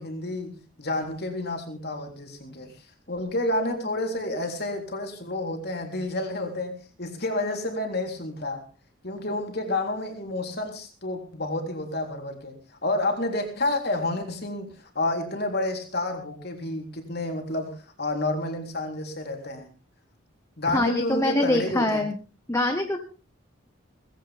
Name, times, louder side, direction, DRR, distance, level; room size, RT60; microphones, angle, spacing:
voice 1, 0.0-2.7 3.1-8.6 9.0-19.7 20.6-22.0, left 2 dB, 50° left, 3 dB, 3.7 m, -30 dB
voice 2, 20.7-22.1 22.5-23.0, left 1 dB, 15° left, 4 dB, 1.5 m, -24 dB
19.0 x 16.0 x 3.6 m, 0.34 s
head